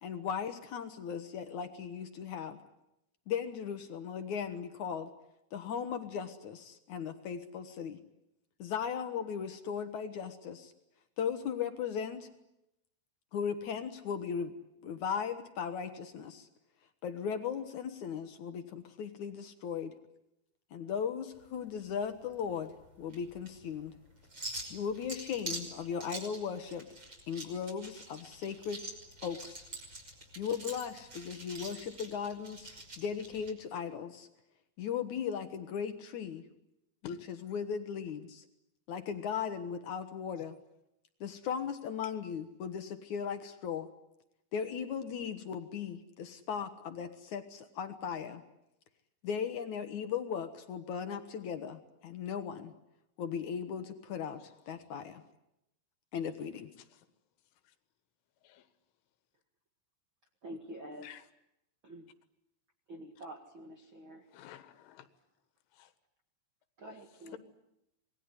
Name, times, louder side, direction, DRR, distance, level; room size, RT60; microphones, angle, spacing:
voice 1, 0.0-2.6 3.3-5.1 5.5-8.0 8.6-10.7 11.2-12.3 13.3-14.5 14.8-16.5 17.0-19.9 20.7-22.7 23.0-23.9 24.7-26.9 27.3-28.8 29.2-29.6 30.4-32.7 33.0-34.3 34.8-36.4 37.0-38.4 38.9-40.6 41.2-43.9 44.5-48.4 49.2-52.7 53.2-55.2 56.1-56.7, left 7 dB, 70° left, 8 dB, 1.9 m, -37 dB
sound 1, 21.3-33.5, right 2 dB, 25° right, 5.9 m, -46 dB
voice 2, 60.4-61.1 61.8-62.1 62.9-64.3 66.8-67.4, right 1 dB, 55° right, 4 dB, 1.3 m, -47 dB
voice 3, 64.3-65.1 65.7-65.9, left 12 dB, 90° left, 10 dB, 4.1 m, -51 dB
27.0 x 20.5 x 9.9 m, 0.86 s
omnidirectional pair, 5.4 m